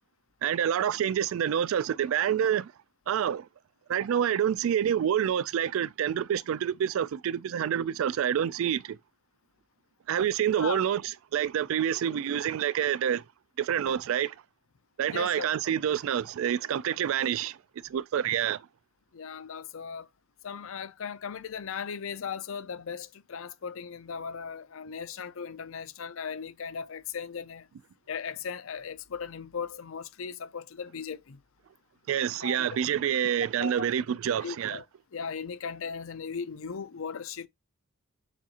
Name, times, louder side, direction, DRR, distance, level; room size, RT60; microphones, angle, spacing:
voice 1, 0.4-2.7 3.1-3.5 3.9-9.0 10.1-11.0 11.3-13.2 13.6-14.4 15.0-17.6 17.8-18.7 32.1-34.8, right 9 dB, 65° right, 0.3 m, -27 dB
voice 2, 15.1-15.5 19.1-20.1 20.4-27.7 28.1-31.4 32.4-32.7 33.6-33.9 34.4-34.8 35.1-37.5, left 6 dB, 65° left, 0.5 m, -37 dB
7.2 x 2.8 x 2.5 m
head